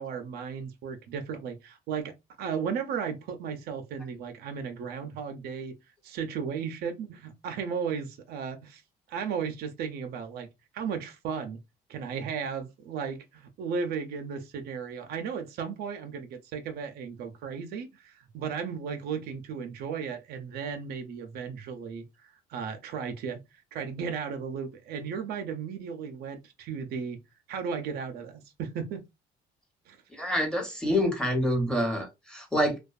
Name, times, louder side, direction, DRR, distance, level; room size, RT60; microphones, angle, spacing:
voice 1, 0.0-5.8 6.0-8.8 9.1-10.5 10.7-11.6 11.9-22.0 22.5-23.4 23.7-27.2 27.5-29.0 29.9-30.0 30.8-31.0, right 6 dB, 70° right, 0.5 m, -35 dB
voice 2, 30.2-32.8, equal, 5° left, 1.0 m, -27 dB
2.4 x 2.2 x 2.4 m
cardioid pair, 110°, 17 cm